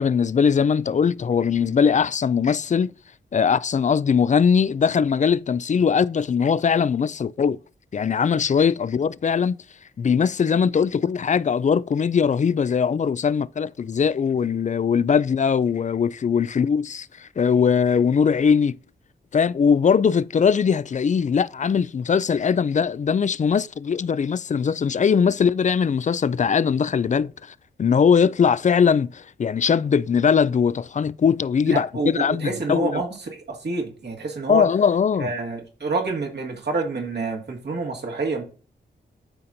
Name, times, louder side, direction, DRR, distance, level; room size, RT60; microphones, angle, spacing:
voice 1, 0.0-2.9 3.3-7.6 7.9-9.6 10.0-18.8 19.3-27.3 27.8-32.9 34.5-35.3, left 6 dB, 40° left, 0.4 m, -20 dB
voice 2, 31.7-34.7 35.2-38.4, right 3 dB, 60° right, 2.1 m, -28 dB
12.5 x 4.2 x 2.7 m
cardioid pair, 55°, 19 cm